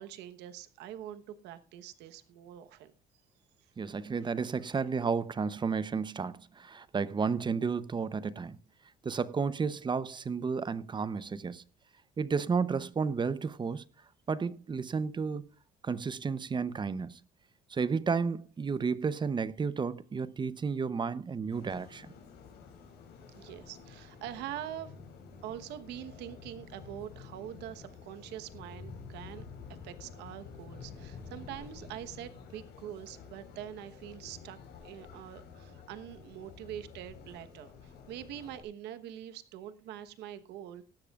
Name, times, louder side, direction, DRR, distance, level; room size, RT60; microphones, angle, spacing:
voice 1, 0.0-2.9 23.3-24.9 25.4-29.4 29.8-34.6 34.8-40.8, right 11 dB, 85° right, 1.2 m, -44 dB
voice 2, 3.8-8.6 9.0-11.6 12.2-13.8 14.3-15.4 15.8-17.2 17.7-22.1, right 5 dB, 25° right, 0.8 m, -32 dB
sound 1, 21.5-38.6, left 5 dB, 80° left, 4.6 m, -50 dB
18.0 x 13.0 x 2.4 m
cardioid pair, 110°, 17 cm